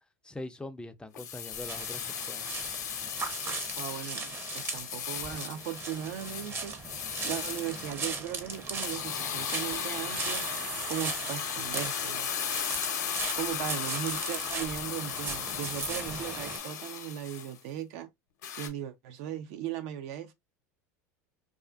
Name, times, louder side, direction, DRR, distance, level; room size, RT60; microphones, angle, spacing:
voice 1, 0.2-2.5, left 2 dB, 10° left, 0.4 m, -42 dB
sound 1, 1.1-7.9 8.5-17.6 18.4-18.7, left 8 dB, 80° left, 0.6 m, -36 dB
sound 2, 1.5-16.6, right 3 dB, 25° right, 0.6 m, -39 dB
voice 2, 3.8-6.8 7.2-10.4 10.9-12.3 13.3-18.1 18.6-20.3, right 10 dB, 65° right, 0.4 m, -37 dB
sound 3, 9.5-13.6, right 3 dB, 85° right, 1.0 m, -44 dB
2.4 x 2.4 x 2.3 m
hypercardioid pair, 85°, 9 cm